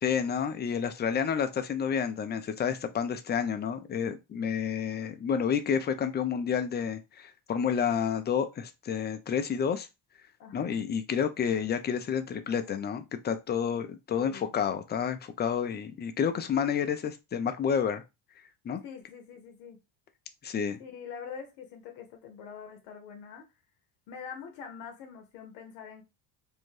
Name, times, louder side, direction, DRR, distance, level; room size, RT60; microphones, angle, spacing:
voice 1, 0.0-9.9 10.5-18.0 18.7-18.8 20.4-20.8, left 7 dB, 25° left, 0.4 m, -30 dB
voice 2, 10.4-10.7 14.2-14.5 18.8-19.8 20.8-23.5 24.1-26.0, left 6 dB, 85° left, 0.7 m, -44 dB
2.6 x 2.1 x 3.1 m
supercardioid pair, 85°, 48 cm